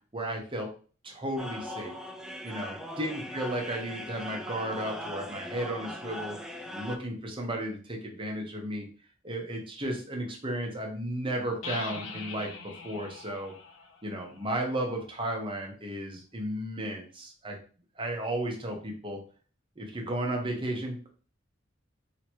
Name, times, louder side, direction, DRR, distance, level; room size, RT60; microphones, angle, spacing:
voice 1, 0.1-0.7 1.0-1.9 2.4-6.4 6.7-8.8 9.2-13.5 14.0-17.6 18.0-19.2 19.8-21.1, right 1 dB, 25° right, 1 dB, 1.1 m, -34 dB
sound 1, 1.4-7.0, equal, 5° right, 0.4 m, -40 dB
sound 2, 11.6-15.3, left 4 dB, 85° left, 0.7 m, -43 dB
3.0 x 2.9 x 4.5 m, 0.39 s
head